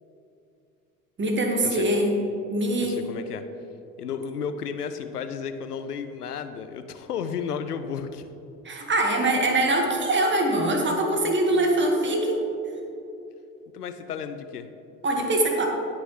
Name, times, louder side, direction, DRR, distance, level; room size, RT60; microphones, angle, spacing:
voice 1, 1.2-2.2 2.5-3.1 8.6-12.4 15.0-15.7, right 1 dB, 25° right, 2 dB, 1.8 m, -23 dB
voice 2, 2.8-3.4 4.0-8.3 13.7-14.7, left 7 dB, 85° left, 9 dB, 0.6 m, -33 dB
18.0 x 6.1 x 3.2 m, 2.8 s
figure-of-eight pair, 65°, 45 cm